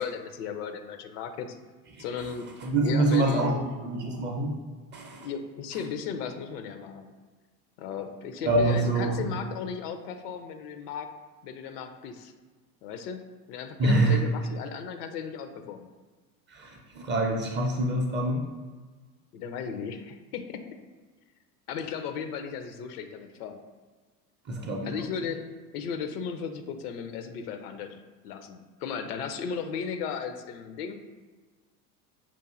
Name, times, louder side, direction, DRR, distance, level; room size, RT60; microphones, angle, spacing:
voice 1, 0.0-1.6 2.0-2.5 2.8-3.6 5.2-7.1 7.8-11.1 11.4-12.3 12.8-13.2 13.5-15.9 19.3-20.6 21.7-23.6 24.8-25.4 25.7-30.9, left 6 dB, 70° left, 7 dB, 0.6 m, -35 dB
voice 2, 2.6-4.5 4.9-5.3 8.4-9.3 13.8-14.2 16.5-18.5 24.5-24.9, right 2 dB, 25° right, 1 dB, 0.5 m, -26 dB
5.3 x 2.6 x 2.4 m, 1.3 s
hypercardioid pair, 85°, 48 cm